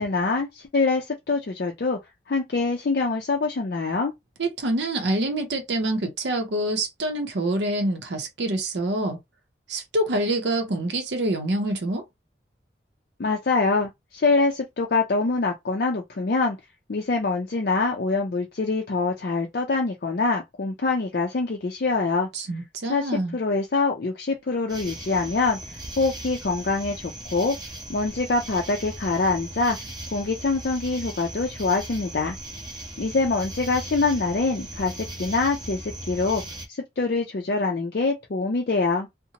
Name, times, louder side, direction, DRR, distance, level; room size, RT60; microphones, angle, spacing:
voice 1, 0.0-2.0 2.3-4.1 13.2-16.6 16.9-22.3 22.9-27.6 27.9-29.8 30.1-32.4 33.0-36.4 36.7-39.1, left 3 dB, 55° left, 0.4 m, -25 dB
voice 2, 4.4-9.2 9.7-12.0 22.3-23.4, right 1 dB, 70° right, 0.6 m, -26 dB
sound 1, 24.7-36.7, right 1 dB, 20° right, 0.7 m, -38 dB
2.7 x 2.1 x 2.8 m
head